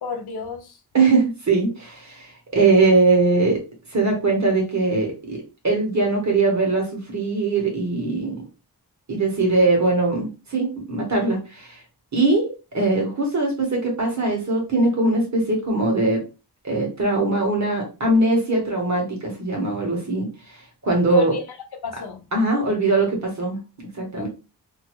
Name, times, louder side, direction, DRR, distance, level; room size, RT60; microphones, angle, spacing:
voice 1, 0.0-0.8 21.1-21.6 21.8-22.2 24.2-24.3, left 5 dB, 90° left, 0.7 m, -32 dB
voice 2, 0.9-3.6 3.9-8.4 9.1-11.8 12.1-16.2 16.6-21.3 22.3-23.6 24.0-24.3, right 3 dB, 45° right, 1.3 m, -21 dB
2.9 x 2.3 x 3.0 m
wide cardioid pair, 135°, 37 cm